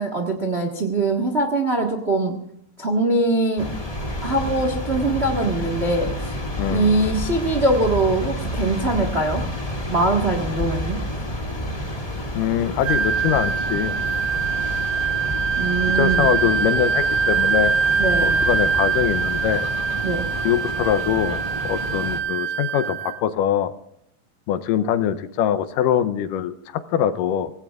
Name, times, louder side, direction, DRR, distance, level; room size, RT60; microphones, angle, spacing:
voice 1, 0.0-2.3 2.8-3.7 4.2-6.3 6.7-9.4 9.9-11.0 15.6-16.3 18.0-18.4 20.0-20.3, right 2 dB, 55° right, 3 dB, 0.7 m, -22 dB
sound 1, 3.6-22.2, left 1 dB, 20° left, 1.0 m, -30 dB
voice 2, 6.6-6.9 12.3-14.0 16.0-17.7 18.2-19.7 20.4-23.7 24.5-27.5, left 10 dB, 80° left, 12 dB, 2.2 m, -23 dB
Wind instrument woodwind instrument, 12.8-23.2, right 6 dB, 75° right, 2.1 m, -23 dB
24.5 x 18.0 x 2.4 m, 0.73 s
omnidirectional pair, 4.0 m